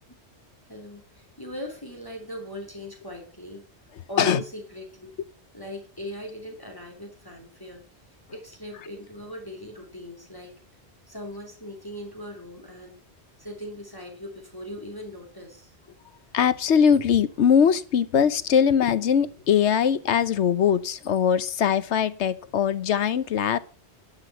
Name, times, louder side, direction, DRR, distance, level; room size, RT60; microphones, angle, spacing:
voice 1, 0.7-3.7 4.1-5.1 5.5-7.9 8.3-10.6 11.1-13.0 13.4-15.7, equal, 20° left, 2.9 m, -39 dB
voice 2, 16.3-23.6, left 7 dB, 85° left, 1.1 m, -21 dB
11.0 x 6.0 x 7.7 m
omnidirectional pair, 1.1 m